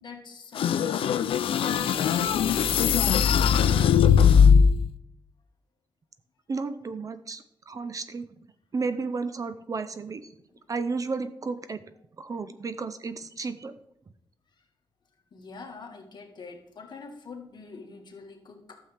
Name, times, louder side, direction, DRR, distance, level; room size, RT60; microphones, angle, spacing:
voice 1, 0.0-3.9 15.3-18.8, left 4 dB, 55° left, 2 dB, 1.7 m, -45 dB
sound 1, 0.6-4.9, left 7 dB, 85° left, 0.4 m, -20 dB
voice 2, 6.5-8.3 8.7-10.2 10.7-11.8 12.2-13.7, right 4 dB, 40° right, 12 dB, 0.6 m, -32 dB
12.0 x 7.4 x 3.4 m, 0.77 s
wide cardioid pair, 105°, 9 cm